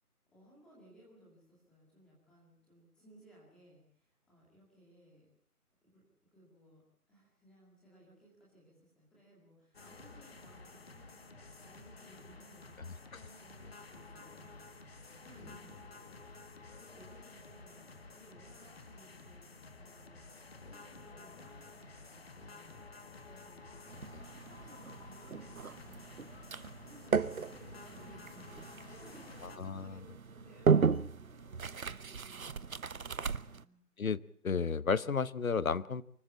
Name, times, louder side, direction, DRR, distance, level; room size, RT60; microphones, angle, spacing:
voice 1, 0.3-5.3 5.8-6.8 7.1-22.8 23.3-33.8, right 1 dB, ahead, -5 dB, 2.2 m, -61 dB
sound 1, 9.7-29.6, left 3 dB, 40° left, 1.8 m, -52 dB
sound 2, 23.9-33.6, right 5 dB, 65° right, 1.0 m, -35 dB
voice 2, 29.6-29.9 34.0-36.0, left 5 dB, 60° left, 19 dB, 1.0 m, -32 dB
25.0 x 14.0 x 8.4 m, 0.62 s
figure-of-eight pair, 170°, 45 cm